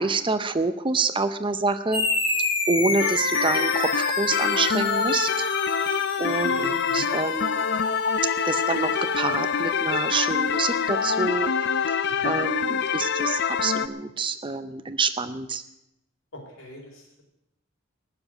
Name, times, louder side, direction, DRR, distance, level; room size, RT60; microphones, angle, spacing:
voice 1, 0.0-2.1 2.7-5.3 6.2-7.7 8.4-11.5 11.9-12.0 12.2-15.6, right 3 dB, 25° right, 11 dB, 0.6 m, -27 dB
sound 1, 1.9-10.8, left 2 dB, 25° left, 1.9 m, -30 dB
sound 2, 3.0-13.9, left 6 dB, 55° left, 0.6 m, -25 dB
voice 2, 6.2-7.1 12.2-12.3 16.3-16.8, equal, 70° left, 1 dB, 4.5 m, -41 dB
18.5 x 7.1 x 9.0 m, 0.87 s
head